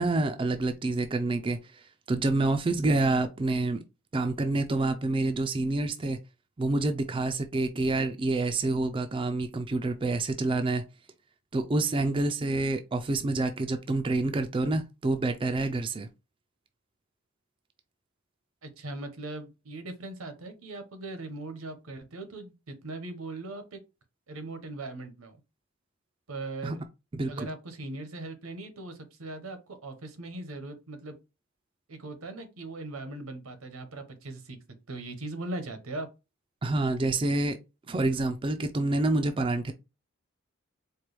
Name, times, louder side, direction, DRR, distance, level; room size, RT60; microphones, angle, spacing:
voice 1, 0.0-3.8 4.1-6.2 6.6-10.8 11.5-16.1 26.6-26.8 27.1-27.5 36.6-37.6 37.9-39.7, right 2 dB, 25° right, 0.3 m, -27 dB
voice 2, 18.6-23.8 24.3-25.4 26.3-26.8 27.3-31.1 31.9-34.6 34.9-36.1, right 2 dB, 85° right, 0.9 m, -39 dB
4.4 x 2.2 x 3.3 m
head